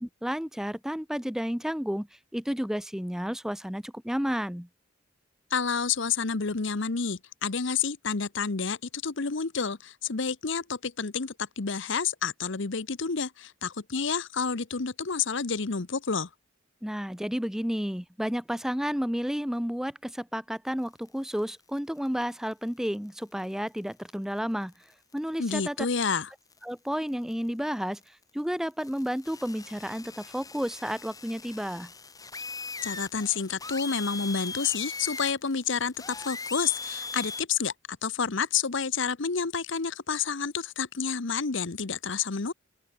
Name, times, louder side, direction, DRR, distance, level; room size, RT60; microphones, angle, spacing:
voice 1, 0.0-2.1 2.3-4.7 16.8-24.7 25.1-25.8 26.6-31.9, equal, ahead, 0.7 m, -31 dB
voice 2, 5.5-16.3 25.4-26.3 32.8-42.5, left 5 dB, 60° left, 1.0 m, -29 dB
sound 1, 21.1-21.8 22.1-22.2 22.5-22.6 22.9-23.0 23.8-24.1 24.7-24.8 25.1-25.4 26.1-26.3 26.5-26.6 27.0-27.3 28.7-37.4, left 4 dB, 15° left, 3.3 m, -40 dB
open air
head